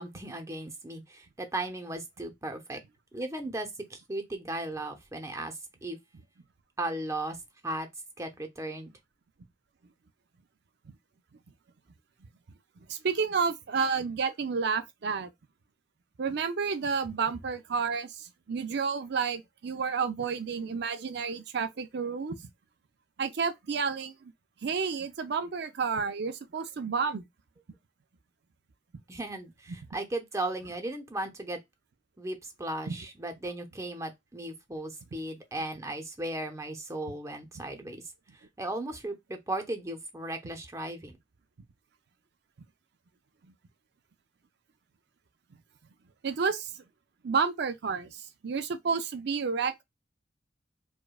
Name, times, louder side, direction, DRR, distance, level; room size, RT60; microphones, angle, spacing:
voice 1, 0.0-2.8 3.1-6.0 6.8-7.4 7.6-7.9 8.2-8.9 29.1-31.6 32.2-38.0 38.6-41.2, right 1 dB, 15° right, 0.6 m, -36 dB
voice 2, 12.9-15.3 16.2-22.5 23.2-24.3 24.6-27.2 32.9-33.0 43.4-43.5 46.2-46.8 47.2-49.8, right 5 dB, 65° right, 0.5 m, -30 dB
4.9 x 2.2 x 2.3 m
head